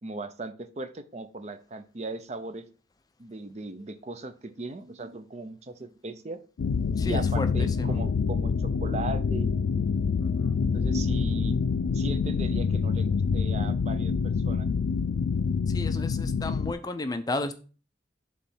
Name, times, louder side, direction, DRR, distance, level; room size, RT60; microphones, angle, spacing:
voice 1, 0.0-2.7 3.2-6.4 7.0-9.5 10.7-11.6 11.9-14.7, right 2 dB, 35° right, 10 dB, 0.6 m, -38 dB
sound 1, 6.6-16.7, left 5 dB, 80° left, 0.4 m, -26 dB
voice 2, 7.0-8.0 10.2-10.6 15.7-17.5, left 2 dB, 20° left, 9 dB, 0.5 m, -33 dB
7.0 x 3.2 x 5.5 m, 0.36 s
head